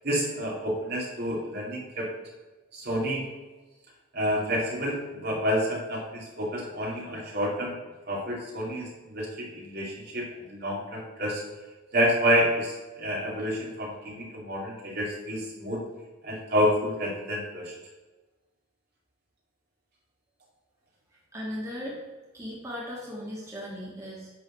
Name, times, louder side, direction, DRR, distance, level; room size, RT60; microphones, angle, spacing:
voice 1, 0.0-2.1 2.7-3.3 4.1-7.8 8.1-11.4 11.9-15.8 16.2-17.7, equal, 50° right, -3 dB, 2.4 m, -29 dB
voice 2, 21.1-22.0 22.3-24.3, equal, 15° right, -6 dB, 1.8 m, -37 dB
10.0 x 4.0 x 6.4 m, 1.2 s
head